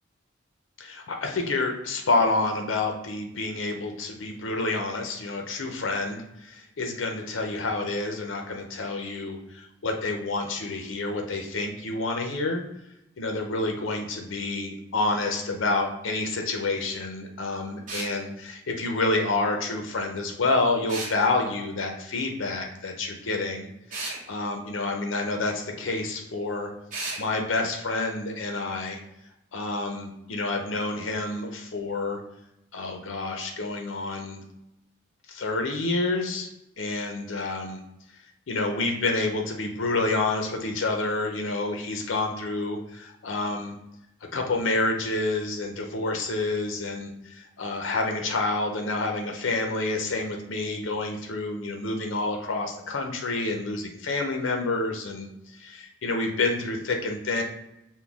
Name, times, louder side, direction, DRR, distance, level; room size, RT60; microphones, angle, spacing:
voice 1, 0.8-12.6 13.2-23.7 23.9-26.7 27.2-29.0 29.5-32.2 32.7-34.4 35.3-36.5 36.8-37.8 38.5-43.7 44.3-57.4, left 2 dB, 80° left, 3 dB, 0.6 m, -28 dB
sound 1, 17.9-18.1 20.9-21.2 23.9-24.2 26.9-27.2, right 3 dB, 45° right, 1.2 m, -33 dB
6.0 x 2.2 x 3.4 m, 0.85 s
head